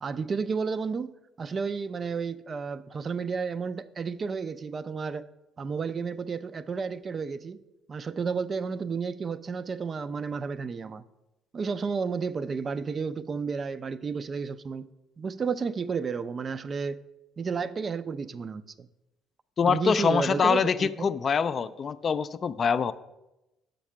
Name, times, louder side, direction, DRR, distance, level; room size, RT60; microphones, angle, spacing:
voice 1, 0.0-5.3 5.6-7.6 7.9-11.0 11.5-14.9 15.2-17.0 17.4-18.9 19.6-21.1, right 5 dB, 35° right, 14 dB, 0.4 m, -32 dB
voice 2, 19.6-22.9, left 6 dB, 40° left, 13 dB, 0.3 m, -25 dB
6.4 x 5.2 x 5.7 m, 0.95 s
figure-of-eight pair, 50°, 0 cm